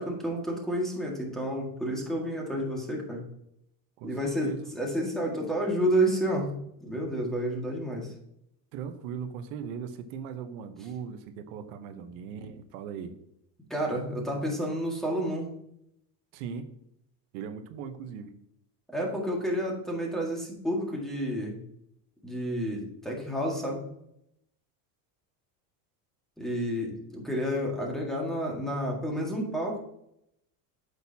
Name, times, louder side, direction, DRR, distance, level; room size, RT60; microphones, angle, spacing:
voice 1, 0.0-3.2 4.0-6.5 6.8-8.1 13.7-15.5 18.9-21.6 22.2-23.8 26.4-29.8, equal, ahead, -2 dB, 1.8 m, -30 dB
voice 2, 4.0-4.9 8.7-13.1 16.3-16.7 17.3-18.3, right 7 dB, 85° right, 8 dB, 1.0 m, -39 dB
8.6 x 6.6 x 2.8 m, 0.77 s
cardioid pair, 150°, 42 cm